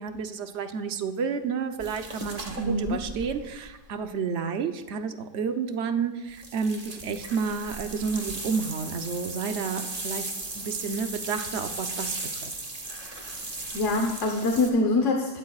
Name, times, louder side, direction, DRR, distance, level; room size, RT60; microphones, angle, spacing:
voice 1, 0.0-12.5, right 5 dB, 70° right, 7 dB, 1.1 m, -31 dB
sound 1, 1.8-4.1 6.3-14.7, right 2 dB, 30° right, 1.4 m, -37 dB
voice 2, 2.6-3.0 13.4-15.4, left 2 dB, 80° left, 3 dB, 1.4 m, -25 dB
20.0 x 12.5 x 2.4 m, 1.1 s
omnidirectional pair, 1.2 m